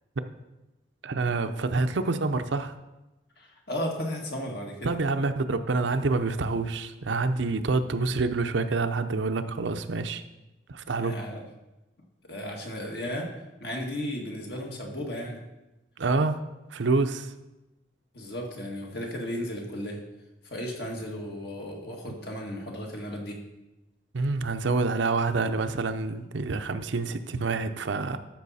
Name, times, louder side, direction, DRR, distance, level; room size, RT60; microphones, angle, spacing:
voice 1, 1.0-2.8 4.8-10.2 10.7-11.2 16.0-16.4 16.7-17.3 22.0-22.1 24.1-28.2, right 3 dB, 75° right, 8 dB, 0.6 m, -27 dB
voice 2, 3.4-5.0 10.9-11.4 12.3-13.3 13.6-15.4 18.1-20.0 20.4-23.4, equal, 55° left, 0 dB, 1.8 m, -34 dB
13.0 x 6.2 x 4.2 m, 1.0 s
head